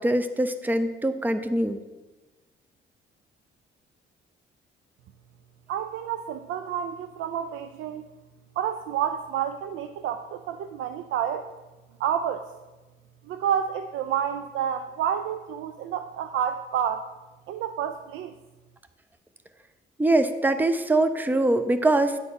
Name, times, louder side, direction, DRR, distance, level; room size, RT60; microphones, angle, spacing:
voice 1, 0.0-1.8 20.0-22.2, right 2 dB, 10° right, 10 dB, 0.6 m, -23 dB
voice 2, 5.7-8.0 8.6-11.5 12.0-12.5 13.3-17.0 17.5-18.3, right 9 dB, 85° right, 9 dB, 0.5 m, -29 dB
9.8 x 4.1 x 7.1 m, 1.2 s
cardioid pair, 90°, 20 cm